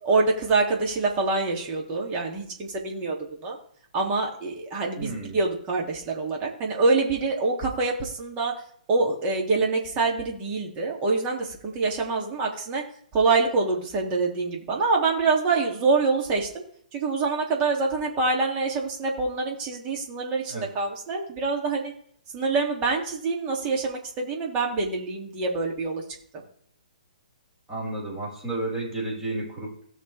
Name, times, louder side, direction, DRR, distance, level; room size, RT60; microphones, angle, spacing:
voice 1, 0.0-3.6 3.9-8.5 8.9-12.8 13.1-16.6 16.9-21.9 22.3-26.0, right 3 dB, 30° right, 0 dB, 3.1 m, -25 dB
voice 2, 5.0-5.4 20.5-20.7 27.7-29.8, right 2 dB, 10° right, -4 dB, 5.7 m, -32 dB
17.0 x 6.7 x 3.6 m, 0.62 s
hypercardioid pair, 130°, 5 cm